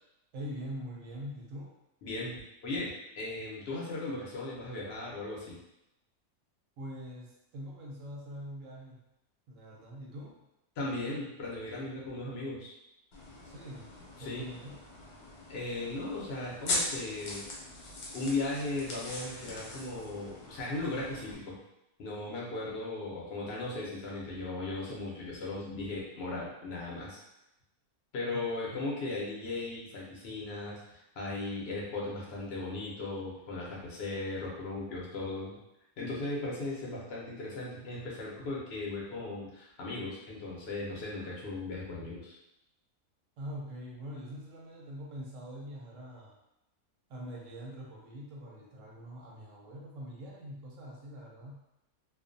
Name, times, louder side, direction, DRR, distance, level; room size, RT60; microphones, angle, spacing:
voice 1, 0.3-1.7 6.8-9.1 9.5-10.4 13.4-13.9 14.2-14.8 28.3-28.9 43.4-46.4 47.1-51.6, equal, 70° right, -2 dB, 0.9 m, -44 dB
voice 2, 2.0-5.5 10.8-12.7 14.2-14.4 15.5-17.4 18.1-21.6 22.0-27.2 28.1-35.6 36.0-42.3, left 2 dB, 55° left, -4 dB, 0.8 m, -37 dB
sound 1, 13.1-21.4, left 1 dB, 85° left, 1.2 m, -40 dB
2.5 x 2.3 x 2.5 m, 0.87 s
omnidirectional pair, 1.5 m